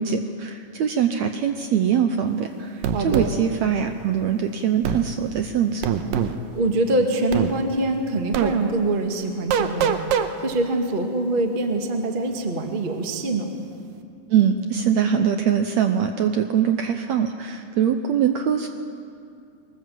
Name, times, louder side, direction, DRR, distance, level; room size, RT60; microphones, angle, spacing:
voice 1, 0.0-5.9 14.3-18.7, right 8 dB, 70° right, 6 dB, 1.8 m, -22 dB
sound 1, 2.8-3.3 4.8-5.0 5.8-6.3 7.3-7.5 8.3-8.5 9.5-10.3, right 9 dB, 85° right, 2.7 m, -22 dB
voice 2, 2.9-3.3 6.5-10.0 10.4-13.5, right 2 dB, 25° right, 3 dB, 1.0 m, -24 dB
23.0 x 19.5 x 7.6 m, 2.5 s
omnidirectional pair, 3.9 m